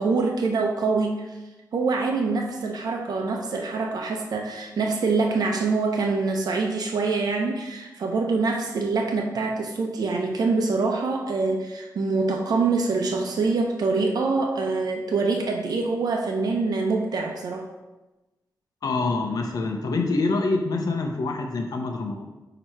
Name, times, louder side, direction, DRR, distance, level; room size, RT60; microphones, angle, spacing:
voice 1, 0.0-1.4 1.7-17.7, right 3 dB, 70° right, 2 dB, 0.7 m, -25 dB
voice 2, 18.8-22.2, left 3 dB, 65° left, 3 dB, 0.8 m, -26 dB
8.7 x 3.0 x 4.5 m, 1.1 s
wide cardioid pair, 120°, 7 cm